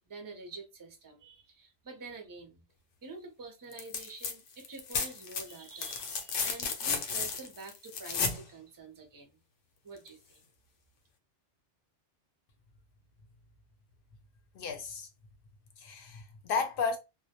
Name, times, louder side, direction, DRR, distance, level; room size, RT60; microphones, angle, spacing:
voice 1, 0.0-2.6 3.0-9.4 9.8-10.4, right 3 dB, 30° right, 0.4 m, -47 dB
sound 1, 3.7-4.3 4.6-8.4 10.1-10.2, left 5 dB, 90° left, 0.9 m, -33 dB
voice 2, 14.5-15.1 15.8-17.0, left 5 dB, 60° left, 0.7 m, -33 dB
2.1 x 2.1 x 2.7 m
omnidirectional pair, 1.2 m